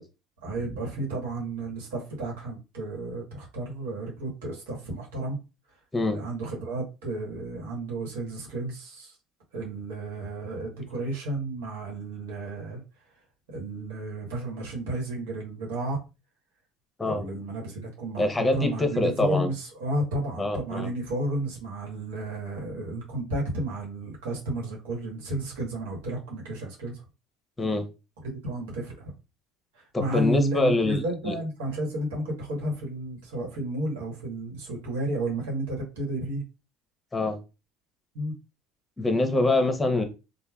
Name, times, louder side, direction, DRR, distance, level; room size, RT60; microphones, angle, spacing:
voice 1, 0.4-5.4 6.1-9.2 9.5-12.8 13.5-16.0 17.0-27.0 28.2-29.1 29.7-36.4 38.1-38.3, right 1 dB, 85° right, -1 dB, 1.2 m, -32 dB
voice 2, 18.2-19.5 20.4-20.9 27.6-27.9 29.9-31.3 37.1-37.4 39.0-40.0, left 2 dB, 15° left, 7 dB, 0.8 m, -25 dB
3.2 x 2.2 x 2.3 m, 0.28 s
supercardioid pair, 85°, 0 cm